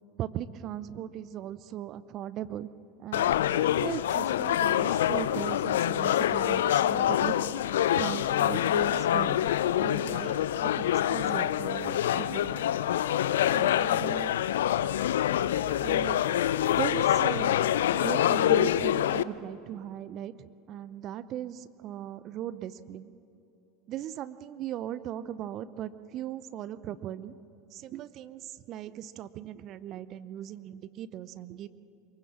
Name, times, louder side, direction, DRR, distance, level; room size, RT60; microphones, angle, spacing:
voice 1, 0.2-2.7 3.0-7.4 7.9-9.5 9.8-12.6 13.5-14.4 15.8-16.3 16.7-17.6 17.9-23.1 23.9-27.3 27.7-31.7, right 11 dB, 45° right, 15 dB, 0.7 m, -38 dB
sound 1, 3.1-19.2, left 11 dB, 75° left, 0.4 m, -26 dB
23.0 x 16.5 x 7.2 m, 2.8 s
hypercardioid pair, 80°, 0 cm